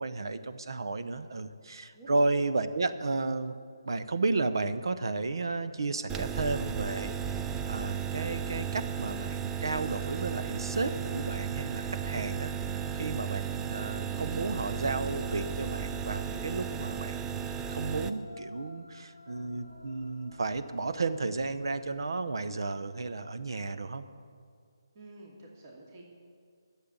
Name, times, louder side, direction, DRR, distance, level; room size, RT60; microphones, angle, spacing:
voice 1, 0.0-3.5 3.8-7.2 7.7-12.5 13.0-24.0, right 3 dB, 65° right, 11 dB, 0.8 m, -33 dB
sound 1, 6.1-18.1, right 7 dB, 10° right, 0.3 m, -35 dB
sound 2, 9.6-22.0, equal, 85° right, 3.9 m, -52 dB
voice 2, 24.9-26.0, right 2 dB, 35° right, -2 dB, 2.4 m, -50 dB
11.5 x 7.5 x 8.9 m, 2.2 s
figure-of-eight pair, 155°, 2 cm